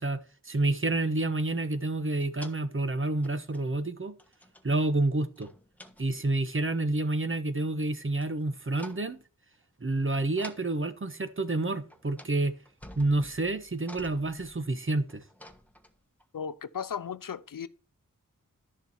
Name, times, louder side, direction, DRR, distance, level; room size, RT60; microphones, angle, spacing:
voice 1, 0.0-4.2 4.6-5.5 6.0-9.2 9.8-12.6 13.0-15.2, right 2 dB, 40° right, 1.1 m, -29 dB
sound 1, 2.2-2.6 3.2-3.9 4.2-4.7 5.4-6.4 8.2-8.4 8.7-9.2 10.4-10.7 11.6-11.7 11.9-12.4 12.6-16.2, left 1 dB, 5° left, 1.3 m, -50 dB
voice 2, 16.3-17.7, left 7 dB, 75° left, 0.7 m, -36 dB
11.5 x 6.9 x 4.3 m
wide cardioid pair, 80°, 33 cm